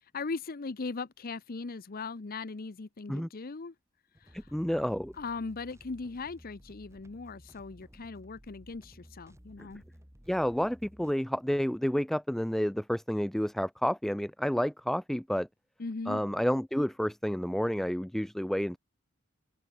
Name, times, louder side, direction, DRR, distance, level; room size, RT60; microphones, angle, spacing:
voice 1, 0.1-3.7 4.2-4.5 5.2-9.8 15.8-16.2, left 4 dB, 45° left, 0.7 m, -39 dB
sound 1, 4.1-11.1, equal, 15° right, 3.5 m, -55 dB
voice 2, 4.5-5.1 10.3-15.5 16.1-18.8, equal, ahead, 0.3 m, -30 dB
open air
head